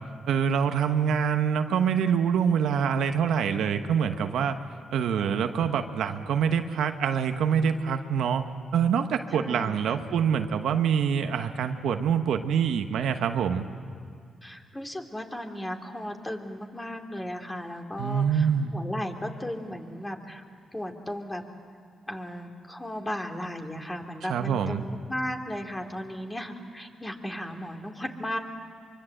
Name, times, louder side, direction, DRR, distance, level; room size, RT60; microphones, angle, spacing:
voice 1, 0.3-4.6 4.9-8.5 8.7-13.7 18.0-18.7 24.3-24.8, right 7 dB, 80° right, 7 dB, 1.1 m, -25 dB
voice 2, 5.0-5.4 9.3-10.1 14.4-20.4 20.7-21.4 22.1-28.4, equal, 15° left, 3 dB, 2.7 m, -36 dB
24.5 x 23.5 x 7.9 m, 2.1 s
cardioid pair, 65°, 0 cm